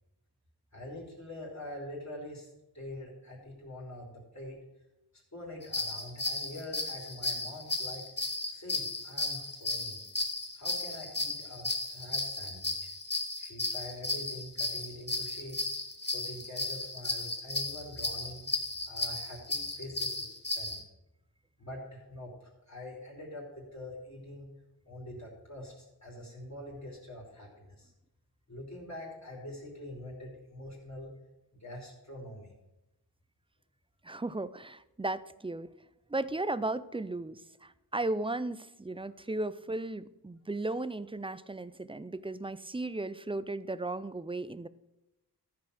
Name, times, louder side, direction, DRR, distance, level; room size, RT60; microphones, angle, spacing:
voice 1, 0.7-2.5 2.7-4.6 5.1-8.0 8.5-10.0 10.5-12.9 13.4-15.7 16.1-18.4 18.9-20.2 20.5-20.8 21.6-24.5 24.8-27.9 28.5-31.1 31.5-32.5, left 1 dB, 40° left, -2 dB, 3.1 m, -45 dB
sound 1, 5.6-20.8, left 2 dB, 25° left, 1.1 m, -35 dB
voice 2, 34.0-35.7 36.1-44.7, right 2 dB, 15° right, 16 dB, 0.3 m, -35 dB
14.0 x 4.8 x 6.4 m, 0.96 s
wide cardioid pair, 70°, 41 cm